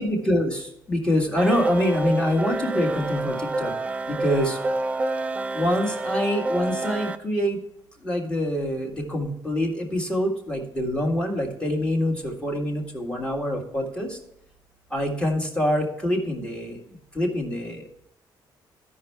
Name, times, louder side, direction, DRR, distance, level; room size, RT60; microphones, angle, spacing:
voice 1, 0.0-3.7 4.1-4.6 5.5-7.6 8.0-14.2 14.9-16.8 17.1-17.9, equal, 15° left, 0 dB, 1.8 m, -25 dB
sound 1, 1.4-7.2, right 2 dB, 15° right, 0.4 m, -28 dB
15.0 x 5.5 x 3.4 m, 0.80 s
cardioid pair, 175°, 8 cm